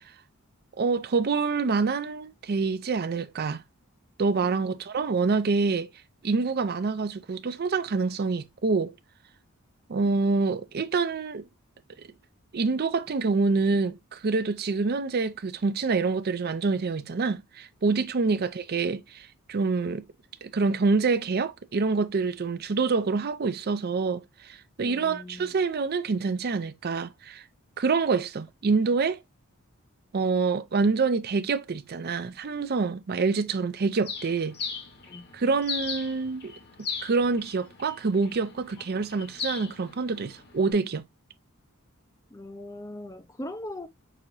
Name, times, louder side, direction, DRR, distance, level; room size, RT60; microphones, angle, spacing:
voice 1, 0.8-3.6 4.2-5.9 6.2-8.9 9.9-11.4 12.5-20.0 20.4-27.4 27.8-29.2 30.1-34.6 35.3-36.5 36.8-41.1, right 4 dB, 45° right, 0.5 m, -26 dB
voice 2, 24.8-25.5 35.1-35.3 42.3-43.9, left 1 dB, 15° left, 0.6 m, -40 dB
Bird, 34.0-40.7, left 5 dB, 50° left, 1.2 m, -38 dB
6.0 x 2.9 x 2.6 m
head